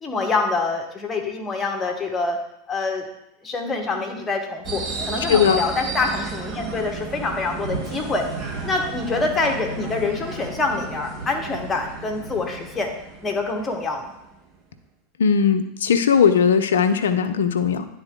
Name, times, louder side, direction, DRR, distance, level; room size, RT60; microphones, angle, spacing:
voice 1, 0.0-2.4 2.7-3.0 3.4-8.2 8.6-12.9 13.2-14.1, left 3 dB, 20° left, 3 dB, 1.4 m, -25 dB
sound 1, 4.6-14.6, right 4 dB, 30° right, 1.4 m, -34 dB
voice 2, 5.3-5.6 15.2-17.9, left 7 dB, 80° left, 9 dB, 0.5 m, -18 dB
sound 2, 7.6-13.3, right 1 dB, 70° right, 2.6 m, -37 dB
9.9 x 3.9 x 3.8 m, 0.81 s
hypercardioid pair, 90°, 0 cm